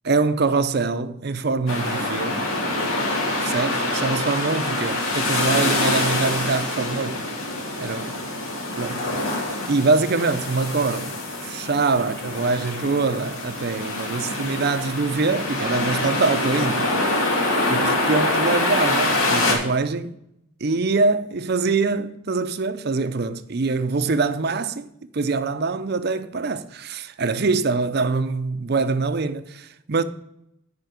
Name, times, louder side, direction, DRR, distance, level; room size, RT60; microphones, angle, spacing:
voice 1, 0.0-2.5 3.4-7.2 7.8-8.3 8.8-9.4 9.6-16.9 17.7-20.2 20.6-24.9 25.1-30.0, right 3 dB, 50° right, 0.6 m, -24 dB
sound 1, 1.7-19.6, left 2 dB, 80° left, 2.5 m, -25 dB
9.4 x 5.2 x 6.7 m
head